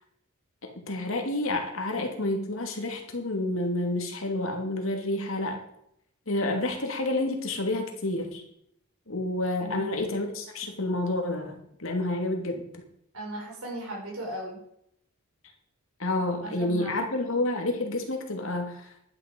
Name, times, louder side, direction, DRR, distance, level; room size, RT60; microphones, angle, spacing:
voice 1, 0.6-5.6 6.3-8.4 9.1-12.8 16.0-18.9, left 2 dB, 65° left, 3 dB, 2.6 m, -29 dB
voice 2, 9.6-9.9 13.1-14.6 16.4-16.9, right 1 dB, 75° right, -1 dB, 5.7 m, -37 dB
12.0 x 9.7 x 5.3 m, 0.72 s
head